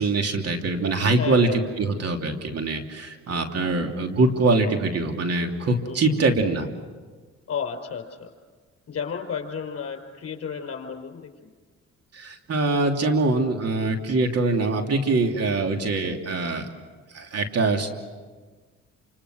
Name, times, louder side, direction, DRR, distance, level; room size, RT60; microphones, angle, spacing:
voice 1, 0.0-1.5 1.8-6.7 12.1-16.7 17.1-17.9, right 3 dB, 55° right, 4 dB, 3.0 m, -23 dB
voice 2, 1.1-1.6 5.9-6.2 7.5-8.3 8.9-11.5, left 6 dB, 50° left, 5 dB, 4.6 m, -33 dB
28.5 x 26.5 x 6.4 m, 1.4 s
cardioid pair, 90°, 30 cm